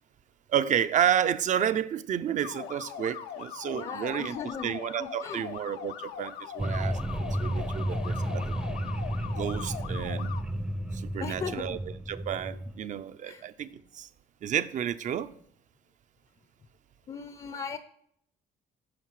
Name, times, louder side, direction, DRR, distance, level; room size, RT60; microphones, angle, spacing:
voice 1, 0.5-4.4 4.6-7.0 7.4-8.5 9.4-10.3 10.9-11.8 12.1-14.1 14.4-15.3, right 9 dB, 50° right, 0.6 m, -30 dB
sound 1, 2.4-10.4, left 9 dB, 80° left, 0.8 m, -41 dB
voice 2, 3.7-5.5 11.2-11.8 13.2-13.4 17.1-17.8, left 6 dB, 35° left, 0.6 m, -38 dB
sound 2, 6.6-12.8, right 1 dB, 5° right, 0.6 m, -32 dB
9.5 x 5.9 x 4.8 m
cardioid pair, 110°, 17 cm